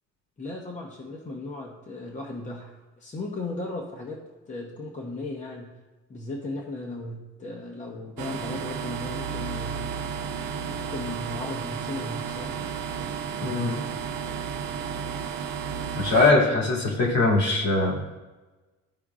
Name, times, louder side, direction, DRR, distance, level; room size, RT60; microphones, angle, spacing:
voice 1, 0.4-4.2 4.5-5.7 6.1-9.9 10.8-12.6, left 2 dB, 25° left, -1 dB, 0.8 m, -36 dB
sound 1, 8.2-16.3, right 6 dB, 85° right, 0.8 m, -33 dB
voice 2, 13.4-13.8 15.9-18.0, left 3 dB, 60° left, -1 dB, 2.2 m, -21 dB
14.0 x 5.0 x 2.4 m, 1.2 s
cardioid pair, 175°, 30 cm